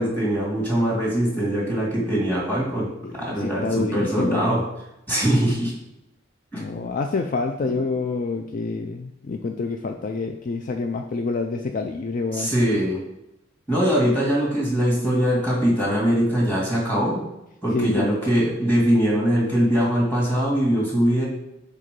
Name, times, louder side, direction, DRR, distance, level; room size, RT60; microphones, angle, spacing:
voice 1, 0.0-4.6 5.1-5.7 6.5-6.6 7.6-7.7 12.3-13.0 13.7-17.2 17.6-21.3, equal, 10° left, -5 dB, 2.3 m, -22 dB
voice 2, 3.0-4.6 6.5-12.5 17.7-18.1, left 3 dB, 45° left, 5 dB, 0.4 m, -27 dB
6.7 x 3.7 x 5.1 m, 0.87 s
head